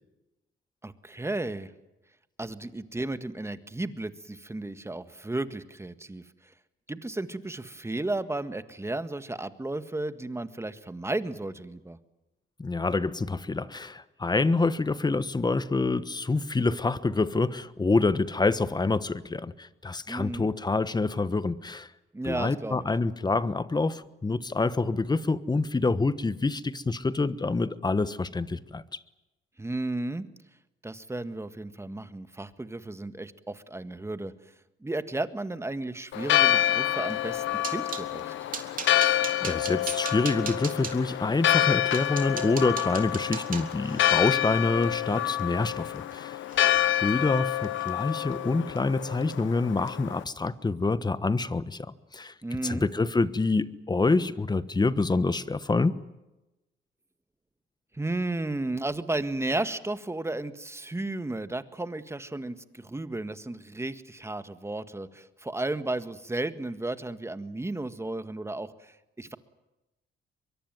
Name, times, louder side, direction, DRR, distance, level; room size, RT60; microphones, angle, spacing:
voice 1, 0.8-1.7 2.4-6.2 6.9-12.0 20.1-20.5 22.1-22.8 29.6-30.3 30.8-34.3 34.8-38.3 52.4-52.9 57.9-69.4, right 2 dB, 15° right, 11 dB, 1.7 m, -33 dB
voice 2, 12.6-21.9 22.2-29.0 39.0-46.4 47.0-52.3 52.6-56.0, left 3 dB, 20° left, 15 dB, 1.2 m, -27 dB
Church bell, 36.1-50.2, left 12 dB, 75° left, 1.1 m, -27 dB
sound 1, 37.2-38.1 38.5-40.9 41.5-41.6 41.9-46.1 46.5-46.9 47.2-47.4 47.8-47.9, right 6 dB, 45° right, 3.3 m, -39 dB
23.0 x 22.5 x 9.3 m, 0.99 s
cardioid pair, 90°, 20 cm